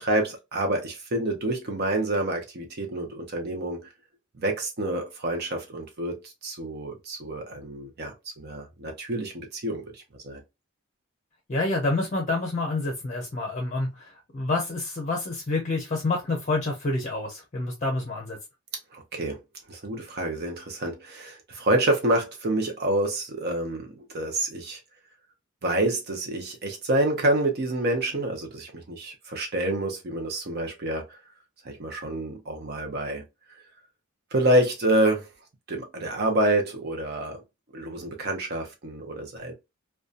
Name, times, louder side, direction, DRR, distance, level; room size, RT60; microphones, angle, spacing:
voice 1, 0.0-3.9 4.4-10.4 18.9-19.4 19.7-24.8 25.6-31.2 31.6-33.2 34.3-35.3 35.7-37.4 37.7-39.5, right 1 dB, 50° right, 0.6 m, -27 dB
voice 2, 11.5-18.4, left 2 dB, 35° left, 0.6 m, -28 dB
2.6 x 2.2 x 2.3 m
head